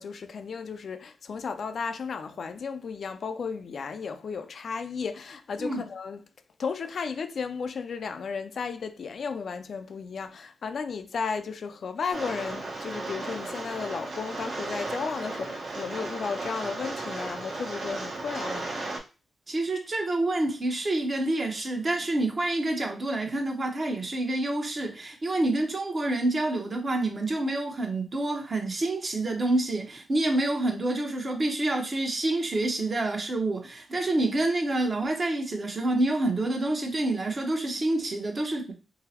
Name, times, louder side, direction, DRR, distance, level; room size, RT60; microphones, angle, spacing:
voice 1, 0.0-6.2 6.6-18.9, left 5 dB, 65° left, 0.3 m, -34 dB
Rain, 12.1-19.0, right 2 dB, 65° right, 1.2 m, -35 dB
voice 2, 19.5-38.7, right 2 dB, 45° right, 0.9 m, -27 dB
3.8 x 2.0 x 2.8 m
supercardioid pair, 50°, 0 cm